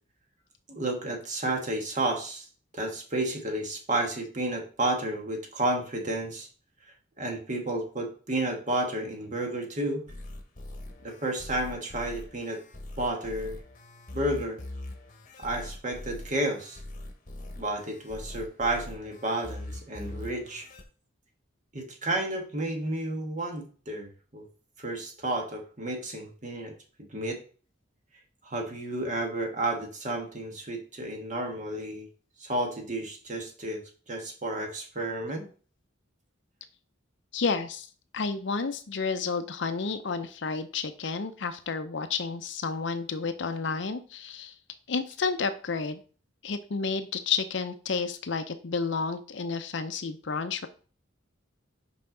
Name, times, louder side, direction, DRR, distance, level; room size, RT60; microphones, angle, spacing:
voice 1, 0.7-2.5 2.7-6.5 7.2-10.0 11.0-12.6 13.0-13.6 14.1-14.6 15.4-16.8 17.6-20.7 21.7-24.4 24.8-26.7 27.1-27.4 28.4-32.1 32.4-35.4, right 1 dB, 40° right, 3 dB, 1.4 m, -31 dB
sound 1, 10.1-20.8, left 1 dB, 40° left, 1.0 m, -42 dB
voice 2, 37.3-37.9 38.1-44.5 44.9-46.0 46.4-50.7, left 5 dB, 65° left, 10 dB, 0.6 m, -31 dB
5.7 x 5.1 x 3.8 m, 0.39 s
head